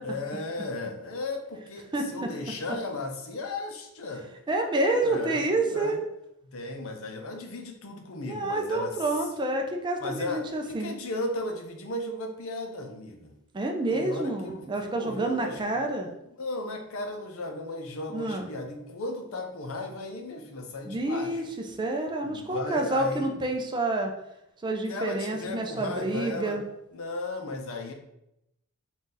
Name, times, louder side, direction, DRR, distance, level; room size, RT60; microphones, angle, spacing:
voice 1, 0.0-4.3 5.0-6.0 6.4-9.0 10.0-13.3 13.9-15.6 16.4-21.5 22.2-23.5 24.9-26.6 26.9-27.9, left 2 dB, 65° left, 4 dB, 0.6 m, -35 dB
voice 2, 4.5-6.0 8.3-10.9 13.5-16.1 18.1-18.5 20.8-21.4 21.8-24.1 24.6-26.6, right 2 dB, 20° right, 3 dB, 0.4 m, -28 dB
3.9 x 2.4 x 3.8 m, 0.85 s
head